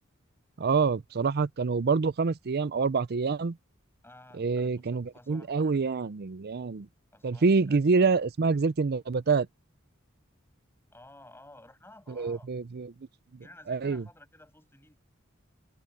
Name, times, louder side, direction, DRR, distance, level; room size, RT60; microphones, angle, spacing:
voice 1, 0.6-3.6 4.4-6.9 7.2-9.5 12.2-12.9 13.7-14.0, right 4 dB, 50° right, 0.5 m, -26 dB
voice 2, 4.0-5.8 7.1-7.8 10.9-12.5 13.3-15.0, left 1 dB, 10° left, 7.1 m, -54 dB
head